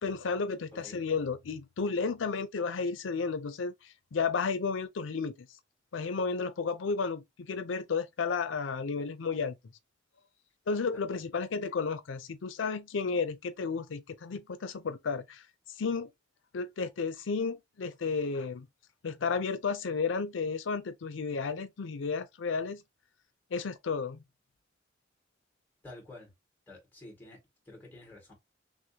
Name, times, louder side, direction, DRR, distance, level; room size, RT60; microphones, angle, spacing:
voice 1, 0.0-5.5 5.9-9.6 10.7-16.1 16.5-18.7 19.0-22.8 23.5-24.2, left 5 dB, 90° left, 0.5 m, -33 dB
voice 2, 25.8-26.3 26.7-27.4 27.7-28.3, left 2 dB, 10° left, 2.0 m, -49 dB
6.1 x 2.1 x 2.8 m
head